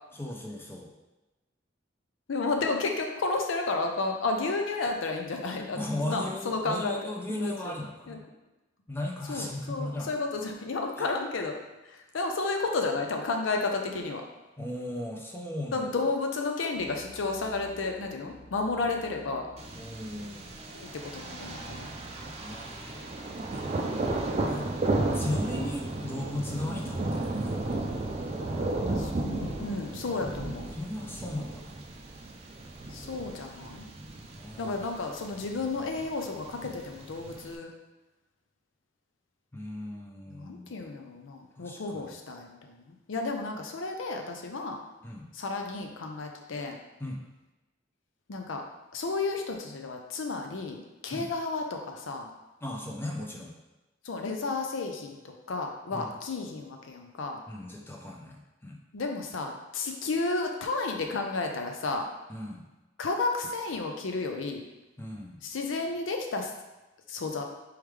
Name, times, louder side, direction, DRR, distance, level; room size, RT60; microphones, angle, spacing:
voice 1, 0.2-0.9 5.7-8.2 8.9-10.1 11.0-11.1 14.6-15.9 19.7-20.6 22.4-23.0 23.5-23.7 24.5-24.7 25.1-28.0 30.7-31.8 34.3-34.8 39.5-40.7 41.6-42.1 45.0-45.3 47.0-47.2 51.1-51.3 52.6-53.5 55.9-56.1 57.5-58.8 62.3-62.6 65.0-65.4, left 1 dB, 10° left, -1 dB, 0.6 m, -37 dB
voice 2, 2.3-7.1 7.4-7.7 8.1-8.2 9.3-11.5 11.9-14.2 15.7-19.5 20.7-21.9 29.0-30.7 32.9-33.9 34.6-37.7 40.3-44.8 45.3-46.8 48.3-48.6 48.9-52.3 54.0-57.4 58.9-62.1 63.0-64.6 65.4-66.5 67.1-67.4, left 3 dB, 90° left, 3 dB, 0.5 m, -32 dB
sound 1, 16.7-23.9, equal, 65° left, 0.9 m, -51 dB
Thunder, 19.6-37.6, right 2 dB, 35° right, 0.4 m, -34 dB
4.6 x 3.6 x 3.2 m, 1.1 s
head